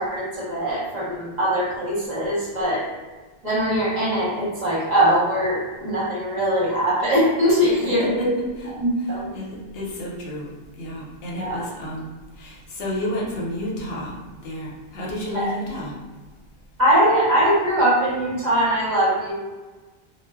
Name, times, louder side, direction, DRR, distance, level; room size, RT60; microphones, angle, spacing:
voice 1, 0.0-2.8 3.4-8.3 8.8-9.2 11.3-11.6 15.3-15.5 16.8-19.3, equal, 45° right, -7 dB, 0.8 m, -21 dB
voice 2, 7.6-10.5 10.8-16.0, left 1 dB, 75° left, -4 dB, 0.8 m, -31 dB
2.1 x 2.0 x 3.3 m, 1.3 s
omnidirectional pair, 1.1 m